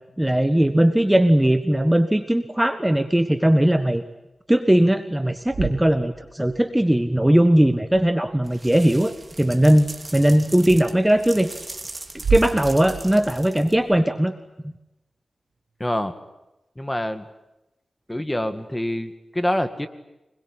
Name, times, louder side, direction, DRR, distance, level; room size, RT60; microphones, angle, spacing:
voice 1, 0.2-4.0 4.5-11.5 12.3-14.3, right 1 dB, 10° right, 9 dB, 1.4 m, -19 dB
sound 1, 5.2-6.7 7.8-8.5 10.6-10.8 12.1-14.1, right 6 dB, 90° right, 1.7 m, -31 dB
sound 2, 8.4-14.0, right 2 dB, 30° right, 2.8 m, -40 dB
voice 2, 15.8-16.1 16.8-17.3 18.1-19.9, left 1 dB, 10° left, 9 dB, 2.0 m, -26 dB
25.5 x 21.5 x 9.9 m, 0.95 s
wide cardioid pair, 80°, 0 cm